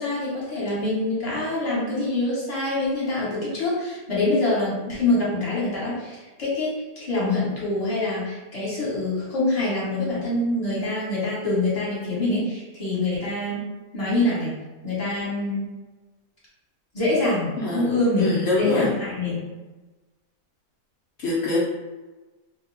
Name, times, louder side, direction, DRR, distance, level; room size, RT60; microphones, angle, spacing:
voice 1, 0.0-13.6 13.9-14.5 14.8-15.7 16.9-18.2 18.6-19.3, left 2 dB, 25° left, -8 dB, 1.0 m, -25 dB
voice 2, 17.6-18.9 21.2-21.6, left 2 dB, 75° left, -6 dB, 0.6 m, -25 dB
2.7 x 2.2 x 3.2 m, 1.2 s
omnidirectional pair, 1.7 m